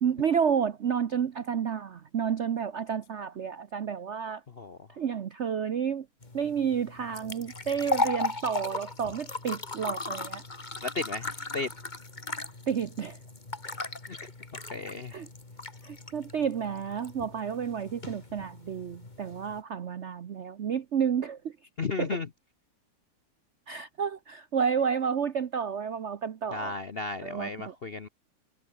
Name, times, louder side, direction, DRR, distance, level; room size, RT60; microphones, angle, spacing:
voice 1, 0.0-4.4 5.0-6.1 6.3-10.4 12.7-13.2 15.1-15.3 15.8-21.5 22.0-22.1 23.7-26.7 27.2-27.7, right 7 dB, 85° right, 0.6 m, -30 dB
voice 2, 4.5-4.8 10.8-11.7 14.1-14.2 14.5-15.2 21.8-22.3 26.5-28.1, left 3 dB, 50° left, 0.7 m, -34 dB
sound 1, 6.2-19.6, left 3 dB, 20° left, 2.2 m, -37 dB
omnidirectional pair, 2.4 m